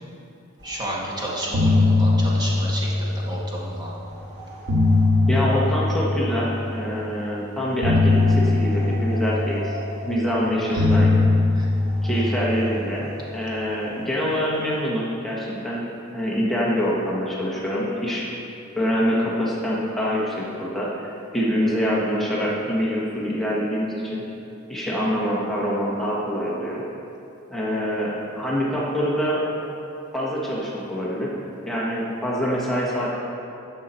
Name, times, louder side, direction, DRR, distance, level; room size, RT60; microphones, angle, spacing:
voice 1, 0.6-3.9 10.7-11.0 11.5-11.7 12.1-12.3, right 1 dB, 20° right, -5 dB, 1.8 m, -32 dB
sound 1, 0.9-1.1 1.4-3.7 4.4-6.8 7.8-10.3 10.8-13.3, left 2 dB, 55° right, 2.1 m, -21 dB
voice 2, 5.3-9.7 10.0-11.2 12.0-15.9 16.1-18.3 18.7-24.2 24.7-26.8 27.5-29.4 30.1-31.3 31.6-33.1, equal, ahead, -6 dB, 1.3 m, -25 dB
11.0 x 6.6 x 4.4 m, 2.7 s
head